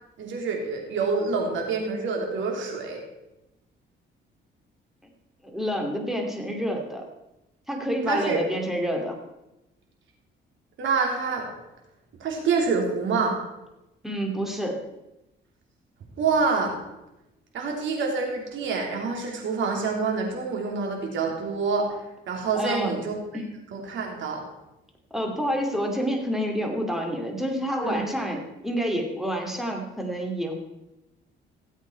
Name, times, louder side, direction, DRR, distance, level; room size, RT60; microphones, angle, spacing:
voice 1, 0.2-3.0 8.1-8.4 10.8-11.5 12.2-13.4 16.2-16.7 17.5-21.9 22.3-23.1 23.7-24.4 27.8-28.1, right 4 dB, 70° right, 1 dB, 3.3 m, -26 dB
voice 2, 5.4-7.0 7.7-9.2 14.0-14.8 22.5-23.0 23.3-23.5 25.1-30.6, equal, ahead, 2 dB, 2.8 m, -28 dB
16.0 x 8.2 x 4.6 m, 0.94 s
cardioid pair, 90°, 20 cm